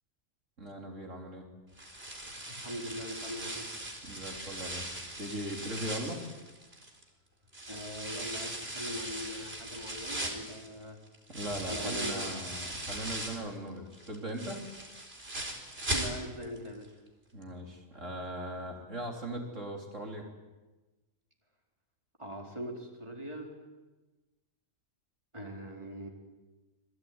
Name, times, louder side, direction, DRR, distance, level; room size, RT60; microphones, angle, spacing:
voice 1, 0.6-1.4 4.0-6.2 11.3-14.6 17.3-20.3, right 1 dB, 60° right, 1 dB, 3.8 m, -39 dB
sound 1, 1.8-7.0 7.5-13.5 13.9-16.6 16.8-16.9 17.4-17.5, right 1 dB, 45° right, 4.5 m, -39 dB
voice 2, 2.2-3.7 7.7-11.0 11.7-12.4 15.9-16.9 22.2-23.5 25.3-26.1, equal, 20° right, 1 dB, 4.3 m, -41 dB
27.0 x 22.0 x 9.6 m, 1.2 s
omnidirectional pair, 1.4 m